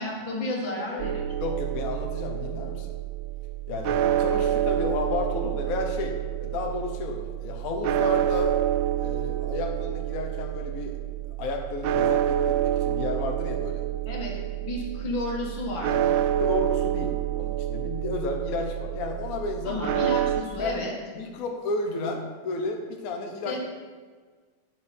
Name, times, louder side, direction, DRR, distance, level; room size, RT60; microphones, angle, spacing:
voice 1, 0.0-1.3 14.1-14.3 14.6-16.2 19.6-20.9 23.4-23.6, left 1 dB, 90° left, -1 dB, 2.5 m, -32 dB
sound 1, 1.0-20.4, right 11 dB, 90° right, 1.3 m, -28 dB
voice 2, 1.4-2.9 3.7-8.6 9.0-11.0 11.4-13.9 16.4-19.8 20.6-20.8 21.1-23.6, left 3 dB, 55° left, 3 dB, 1.3 m, -32 dB
9.6 x 7.7 x 4.3 m, 1.5 s
omnidirectional pair, 2.0 m